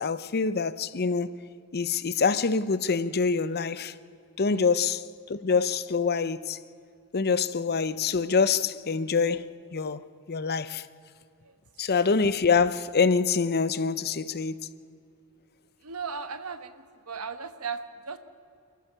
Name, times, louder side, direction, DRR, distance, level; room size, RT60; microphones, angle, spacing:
voice 1, 0.0-1.3 1.7-3.9 4.4-6.6 7.1-10.0 10.3-10.9 11.8-14.7, left 5 dB, 45° left, 0.7 m, -25 dB
voice 2, 15.8-18.2, right 5 dB, 70° right, 1.3 m, -37 dB
28.5 x 14.0 x 6.8 m
head